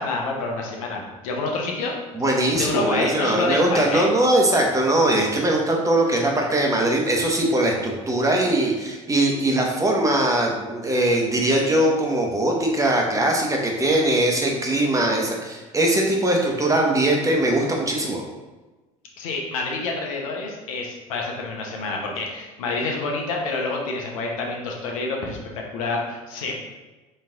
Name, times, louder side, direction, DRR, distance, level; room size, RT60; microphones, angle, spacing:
voice 1, 0.0-2.0 2.6-4.1 19.2-26.5, left 3 dB, 75° left, 0 dB, 0.9 m, -27 dB
voice 2, 2.1-18.2, right 1 dB, 20° right, 0 dB, 1.0 m, -21 dB
4.4 x 3.1 x 3.7 m, 1.2 s
hypercardioid pair, 75°, 18 cm